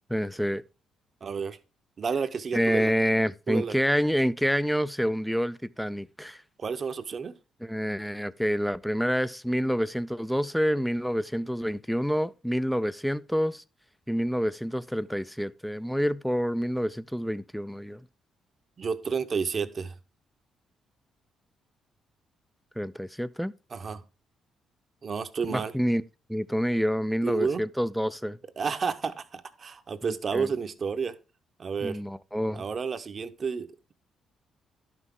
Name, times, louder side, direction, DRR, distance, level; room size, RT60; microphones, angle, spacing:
voice 1, 0.1-0.6 2.5-6.4 7.6-13.6 14.1-18.0 22.8-23.5 25.5-26.0 26.3-28.4 30.0-30.5 31.8-32.6, equal, ahead, 0.4 m, -28 dB
voice 2, 1.2-1.6 2.0-2.9 3.5-3.7 6.6-7.4 18.8-19.9 23.7-24.0 25.0-25.7 27.2-27.6 28.6-31.2 31.6-32.0 32.5-33.9, right 5 dB, 45° right, 0.8 m, -31 dB
11.0 x 6.0 x 3.6 m
cardioid pair, 90°, 0 cm